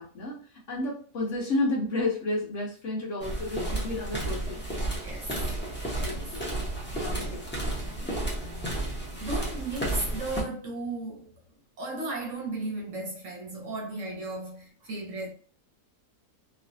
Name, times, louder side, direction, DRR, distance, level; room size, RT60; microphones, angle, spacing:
voice 1, 0.0-4.6 6.0-6.5 6.9-8.2, left 2 dB, 55° left, 1.0 m, -32 dB
sound 1, 3.2-10.4, right 1 dB, 10° left, 0.6 m, -32 dB
voice 2, 9.2-11.3 11.8-15.3, right 2 dB, 60° right, 0.9 m, -35 dB
3.1 x 2.5 x 2.6 m
omnidirectional pair, 1.7 m